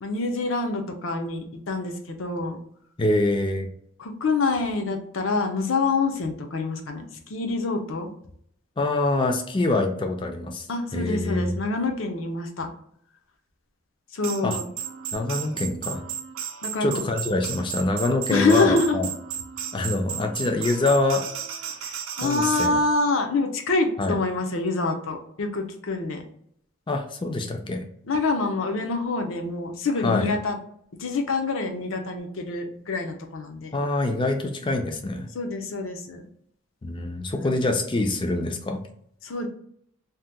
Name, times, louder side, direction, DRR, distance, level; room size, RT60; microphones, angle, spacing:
voice 1, 0.0-2.6 4.0-8.1 10.7-12.7 14.1-14.6 16.6-16.9 18.3-19.1 21.8-26.2 28.1-30.6 31.0-33.8 35.3-36.2 37.3-37.5 39.2-39.5, left 3 dB, 70° left, 4 dB, 0.6 m, -26 dB
voice 2, 3.0-3.7 8.8-10.6 10.9-11.6 14.4-14.6 15.1-16.0 16.8-19.1 19.7-21.3 22.2-22.8 24.0-24.2 26.9-27.8 30.0-30.3 33.7-35.3 36.8-38.8, left 2 dB, 25° left, 4 dB, 0.4 m, -25 dB
sound 1, 14.2-22.7, right 9 dB, 70° right, 0.4 m, -34 dB
2.8 x 2.2 x 3.4 m, 0.69 s
head